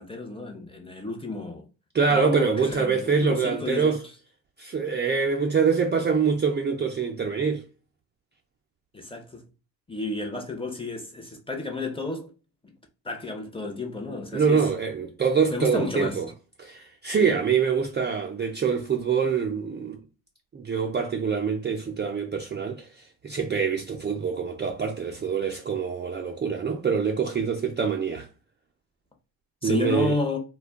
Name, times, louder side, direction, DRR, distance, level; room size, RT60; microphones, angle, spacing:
voice 1, 0.0-1.7 2.1-4.0 8.9-9.5 9.9-12.3 12.6-12.7 13.0-14.7 15.5-16.2 17.2-17.4 29.6-30.4, left 3 dB, 10° left, 0.7 m, -31 dB
voice 2, 1.9-4.0 4.6-7.6 14.3-16.3 16.6-20.0 20.5-28.3 29.6-30.1, right 5 dB, 25° right, 0.4 m, -25 dB
2.2 x 2.2 x 3.4 m
supercardioid pair, 65°, 44 cm